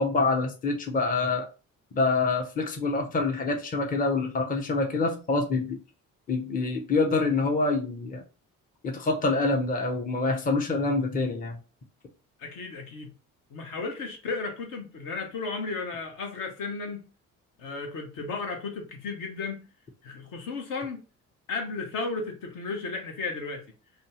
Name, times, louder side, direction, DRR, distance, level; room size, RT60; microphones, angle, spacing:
voice 1, 0.0-1.5 1.9-5.8 6.3-8.2 8.8-11.6, left 3 dB, 20° left, 0.7 m, -26 dB
voice 2, 12.4-13.1 13.5-17.1 17.6-19.7 20.0-21.0 21.5-23.6, left 4 dB, 50° left, 0.8 m, -34 dB
2.6 x 2.3 x 2.9 m
figure-of-eight pair, 45°, 42 cm